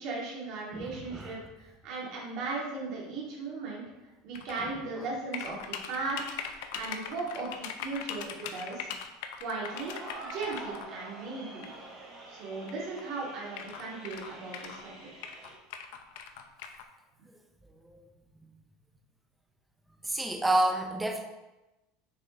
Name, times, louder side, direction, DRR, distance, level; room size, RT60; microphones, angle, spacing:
voice 1, 0.0-3.8 4.2-6.3 6.7-8.9 9.4-11.7 12.3-14.9, right 3 dB, 45° right, -4 dB, 2.2 m, -37 dB
voice 2, 0.7-1.5 4.6-5.1 17.9-18.0 20.0-21.2, right 1 dB, 5° right, 2 dB, 0.7 m, -30 dB
sound 1, 4.3-4.6 5.3-10.9 11.6-11.8 12.7-12.8 13.0-13.1 13.5-14.8 15.2-16.8, left 7 dB, 65° left, 0.6 m, -40 dB
sound 2, 9.6-15.5, right 2 dB, 25° right, 2.0 m, -47 dB
6.7 x 4.5 x 3.8 m, 1.0 s
supercardioid pair, 165°, 0 cm